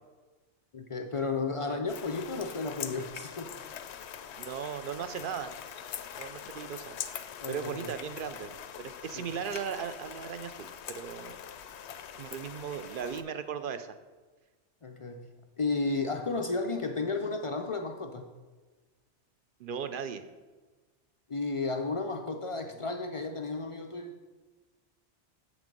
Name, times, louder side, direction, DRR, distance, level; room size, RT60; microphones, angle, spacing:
voice 1, 0.7-3.6 7.4-7.9 9.1-9.2 14.8-15.3 15.6-18.3 21.3-24.2, left 3 dB, 50° left, 5 dB, 0.3 m, -33 dB
sound 1, 1.9-13.2, left 9 dB, 75° left, 0.8 m, -43 dB
voice 2, 4.4-5.5 6.2-6.9 7.5-8.5 8.8-11.4 12.2-13.9 19.6-20.2, right 7 dB, 60° right, 10 dB, 0.6 m, -37 dB
7.4 x 6.2 x 5.2 m, 1.3 s
omnidirectional pair, 1.2 m